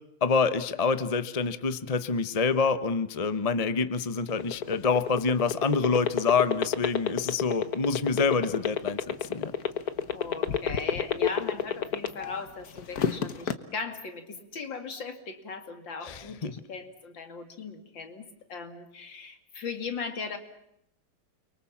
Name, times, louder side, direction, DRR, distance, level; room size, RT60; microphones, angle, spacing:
voice 1, 0.2-9.5 16.0-16.5, left 5 dB, 25° left, 12 dB, 0.8 m, -27 dB
sound 1, 4.2-12.4 12.8-13.5, left 8 dB, 50° left, 1.7 m, -27 dB
voice 2, 10.1-20.4, left 4 dB, 70° left, 7 dB, 3.1 m, -38 dB
29.5 x 23.5 x 7.3 m, 0.81 s
omnidirectional pair, 2.1 m